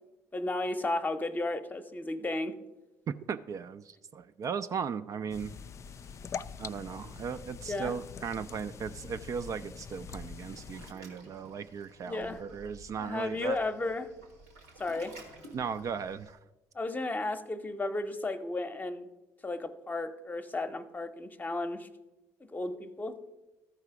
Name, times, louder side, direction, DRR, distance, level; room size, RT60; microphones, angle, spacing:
voice 1, 0.3-2.5 7.7-7.9 12.0-12.4 13.0-14.1 14.8-15.1 16.7-19.1 19.4-21.9 22.4-23.1, left 2 dB, 20° left, 9 dB, 0.8 m, -34 dB
voice 2, 3.3-5.5 6.6-13.6 15.5-16.4, right 6 dB, 45° right, 11 dB, 0.4 m, -37 dB
sound 1, 5.3-10.9, left 6 dB, 40° left, 0.3 m, -44 dB
Waves surf, 5.8-16.3, right 2 dB, 90° right, 1.3 m, -54 dB
13.5 x 4.8 x 4.8 m, 1.1 s
hypercardioid pair, 55°, 8 cm